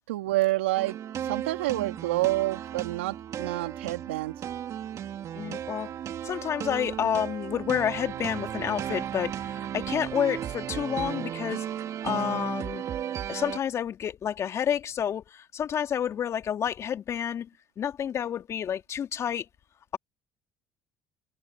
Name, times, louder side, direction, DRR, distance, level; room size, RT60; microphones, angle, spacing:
voice 1, 0.1-1.0 1.2-4.3, right 18 dB, 85° right, 3.1 m, -28 dB
sound 1, 0.8-13.6, right 10 dB, 55° right, 2.8 m, -35 dB
voice 2, 5.3-5.9 6.2-11.7 12.0-12.8 13.3-17.5 17.8-19.5, left 9 dB, 50° left, 2.7 m, -29 dB
hypercardioid pair, 60°, 6 cm